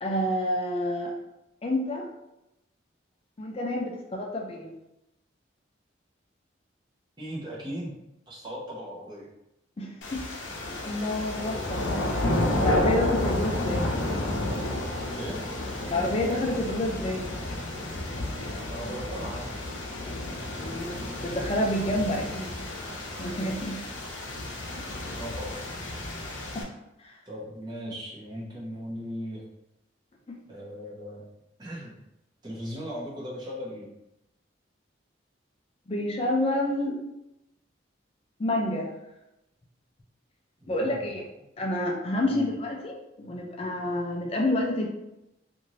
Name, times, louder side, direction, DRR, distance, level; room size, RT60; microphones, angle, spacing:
voice 1, 0.0-1.1 1.6-2.1 3.4-4.7 9.8-10.2 10.6-11.8 12.6-13.9 15.8-17.3 20.6-22.7 23.2-23.8 26.5-26.7 27.0-27.1 30.3-30.4 35.9-37.0 38.4-38.9 40.7-41.2 41.6-44.9, left 1 dB, 30° left, 0 dB, 0.4 m, -29 dB
voice 2, 7.2-8.0 8.3-9.3 15.1-15.4 18.7-19.7 25.2-25.6 27.3-29.4 30.5-31.2 31.6-32.0 32.4-33.9 40.6-41.1 42.3-42.5, equal, 25° right, -6 dB, 0.8 m, -38 dB
sound 1, 10.0-26.6, left 1 dB, 85° left, 0.6 m, -31 dB
2.6 x 2.5 x 3.0 m, 0.88 s
head